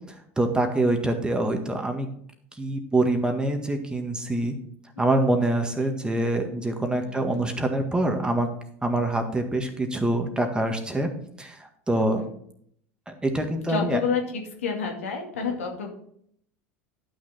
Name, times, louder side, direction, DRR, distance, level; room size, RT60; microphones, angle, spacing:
voice 1, 0.4-2.1 2.6-4.5 5.0-8.5 8.8-11.1 11.4-12.3 13.1-14.0, right 1 dB, 10° right, 5 dB, 1.8 m, -25 dB
voice 2, 7.0-7.5 11.9-12.3 13.7-15.9, left 5 dB, 85° left, 1 dB, 2.2 m, -30 dB
11.5 x 6.4 x 4.3 m, 0.65 s
hypercardioid pair, 85°, 7 cm